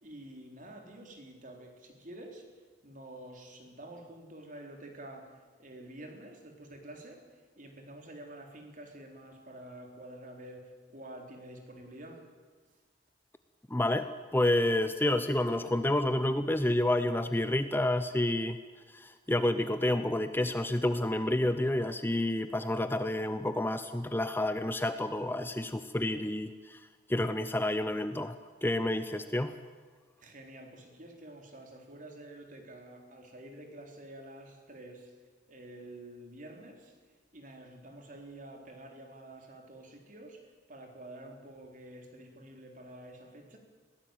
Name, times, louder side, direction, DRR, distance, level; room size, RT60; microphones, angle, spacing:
voice 1, 0.0-2.4 2.8-12.3 30.2-35.2 35.5-37.0 37.3-43.6, right 1 dB, 45° right, 3 dB, 3.9 m, -49 dB
voice 2, 13.7-18.6 18.9-26.8 27.1-28.4 28.6-29.6, left 1 dB, 10° left, 10 dB, 0.7 m, -29 dB
21.5 x 17.5 x 9.1 m, 1.4 s
head